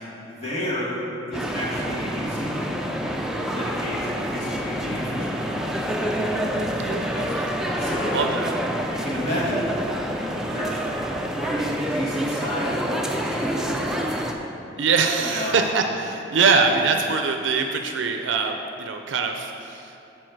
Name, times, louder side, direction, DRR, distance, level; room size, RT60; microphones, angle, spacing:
voice 1, 0.2-1.0 1.3-2.8 3.5-5.5 7.8-8.2 8.9-9.7 10.5-10.8 11.4-13.8 15.2-15.6 16.6-16.8, equal, 35° left, -6 dB, 1.7 m, -31 dB
sound 1, 1.3-14.3, equal, 5° right, 0.4 m, -27 dB
voice 2, 6.9-7.5 8.1-8.5 14.8-19.9, right 4 dB, 70° right, 5 dB, 0.4 m, -23 dB
7.6 x 4.5 x 6.5 m, 2.7 s
head